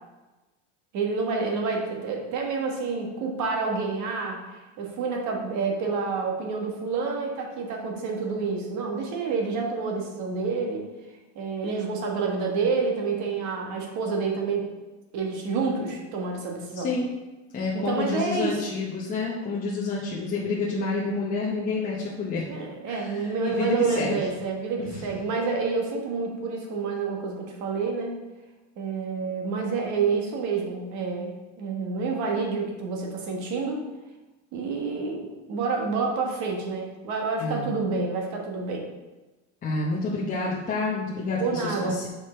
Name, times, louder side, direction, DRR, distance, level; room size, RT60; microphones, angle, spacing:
voice 1, 0.9-10.8 11.3-14.7 15.1-16.9 17.7-18.6 22.5-28.2 28.8-33.8 34.5-38.9 41.4-42.0, right 4 dB, 50° right, 1 dB, 1.6 m, -28 dB
voice 2, 16.7-17.1 17.5-22.4 22.9-24.2 24.8-25.1 37.4-37.8 39.6-42.1, left 3 dB, 20° left, -6 dB, 0.9 m, -29 dB
6.6 x 4.9 x 4.4 m, 1.1 s
cardioid pair, 160°, 37 cm